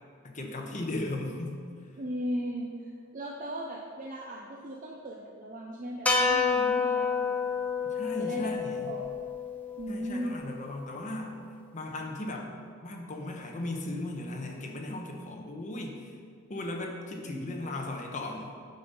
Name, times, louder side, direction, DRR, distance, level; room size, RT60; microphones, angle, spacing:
voice 1, 0.2-1.5 7.9-8.9 9.9-11.4 11.7-12.5 12.8-16.1 16.5-18.5, left 1 dB, 35° left, 1 dB, 1.0 m, -36 dB
voice 2, 2.0-7.8 8.2-9.0 9.8-10.4 17.3-17.6, equal, 40° right, -1 dB, 0.5 m, -37 dB
sound 1, 6.1-10.4, left 5 dB, 5° left, 0.6 m, -29 dB
7.7 x 5.5 x 5.4 m, 2.2 s
head